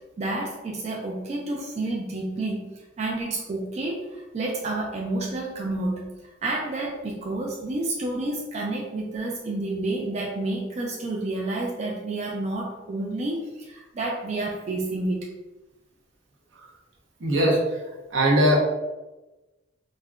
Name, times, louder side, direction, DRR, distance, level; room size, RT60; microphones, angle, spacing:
voice 1, 0.0-2.7 3.0-6.1 6.4-15.3, right 2 dB, 35° right, -2 dB, 0.3 m, -30 dB
voice 2, 17.2-17.8 18.1-18.6, equal, 80° right, -3 dB, 0.7 m, -20 dB
3.5 x 2.1 x 2.3 m, 1.1 s
head